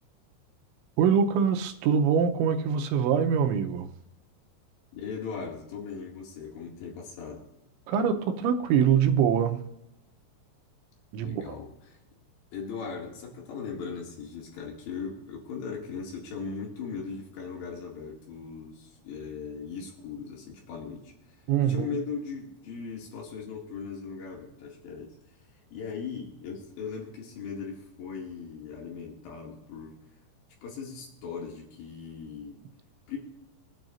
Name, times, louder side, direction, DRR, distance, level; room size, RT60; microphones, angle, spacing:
voice 1, 1.0-3.9 7.9-9.6 11.1-11.6 21.5-22.0, right 7 dB, 90° right, 3.2 m, -24 dB
voice 2, 4.9-7.4 11.2-12.0 12.5-21.1 21.6-25.1 25.7-30.0 30.6-32.6 33.1-33.2, left 5 dB, 75° left, 4.5 m, -38 dB
23.0 x 9.1 x 2.6 m
omnidirectional pair, 5.3 m